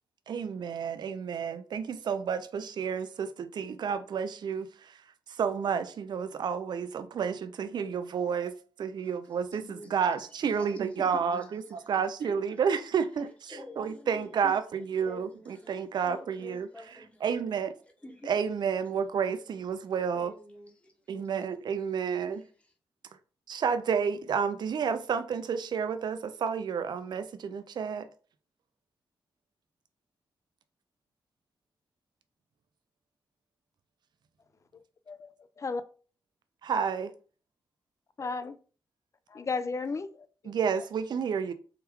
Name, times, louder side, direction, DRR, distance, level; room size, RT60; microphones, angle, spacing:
voice 1, 0.3-5.0 5.3-8.5 8.8-9.6 9.9-16.7 17.2-17.7 18.2-20.3 21.1-22.4 23.5-28.1 36.6-37.1 40.5-41.5, right 6 dB, 60° right, 0.3 m, -30 dB
voice 2, 9.5-11.0 11.3-11.9 12.2-12.7 13.2-14.5 15.0-17.4 18.0-18.3 19.2-19.6 20.1-21.3 22.1-22.7, left 2 dB, 15° left, 1.0 m, -49 dB
voice 3, 35.1-35.8 38.2-38.6 39.3-40.5, left 4 dB, 35° left, 0.4 m, -34 dB
3.6 x 2.2 x 2.9 m
cardioid pair, 65°, 8 cm